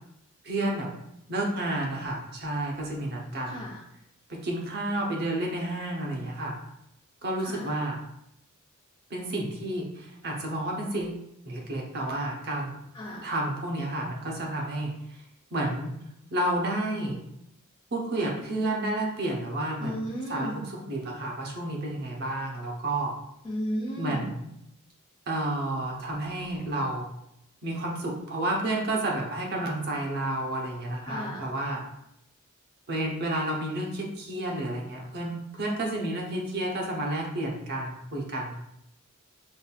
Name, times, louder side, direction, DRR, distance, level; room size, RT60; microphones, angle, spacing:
voice 1, 0.4-0.9 1.3-3.6 4.3-6.6 7.2-8.0 9.1-12.8 13.2-15.2 15.5-15.9 16.3-17.2 17.9-19.9 20.3-23.1 23.9-24.5 25.3-27.1 27.6-31.8 32.9-38.5, right 1 dB, 50° right, -1 dB, 0.9 m, -31 dB
voice 2, 3.5-3.8 7.4-7.7 12.9-13.2 19.8-20.6 23.4-24.2 31.0-31.4, equal, 25° left, -6 dB, 0.6 m, -34 dB
5.4 x 2.5 x 2.4 m, 0.81 s
head